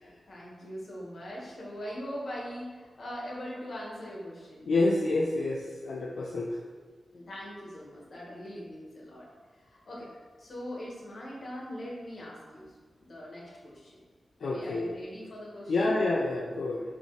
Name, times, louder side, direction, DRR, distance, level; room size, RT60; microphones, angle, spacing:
voice 1, 0.0-4.7 7.1-9.3 9.6-10.1 10.4-12.7 13.0-14.0 14.4-16.0, equal, 55° left, -4 dB, 1.9 m, -41 dB
voice 2, 4.7-6.5 14.4-15.0 15.7-16.8, left 2 dB, 80° left, -3 dB, 0.7 m, -28 dB
6.4 x 3.6 x 5.0 m, 1.5 s
wide cardioid pair, 120°, 0 cm